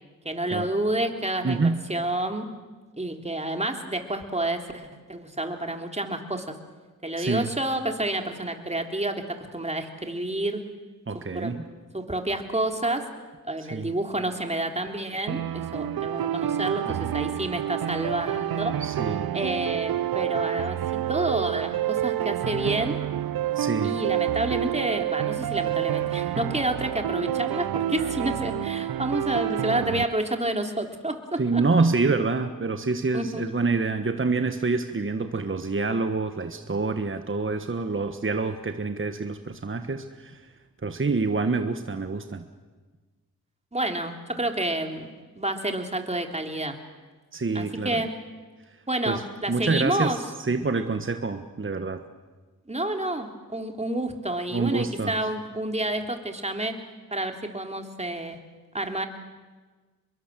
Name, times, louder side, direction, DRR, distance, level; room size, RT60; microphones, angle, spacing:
voice 1, 0.2-2.5 3.0-6.5 7.0-10.6 11.3-11.5 11.9-13.1 13.4-18.8 19.3-23.0 23.8-31.6 33.1-33.4 43.7-46.8 47.5-48.1 48.9-50.2 52.7-56.8 57.1-58.4 58.7-59.1, right 1 dB, 20° right, 4 dB, 3.3 m, -29 dB
voice 2, 1.4-1.8 7.2-7.5 11.1-11.7 13.6-13.9 16.9-17.1 18.8-19.3 23.5-24.0 31.4-40.4 40.8-42.4 47.3-48.0 49.1-52.0 54.5-55.2, right 3 dB, 35° right, 8 dB, 1.4 m, -27 dB
sound 1, 15.3-30.0, right 12 dB, 75° right, 0.7 m, -28 dB
25.0 x 22.0 x 7.6 m, 1.3 s
cardioid pair, 40°, 36 cm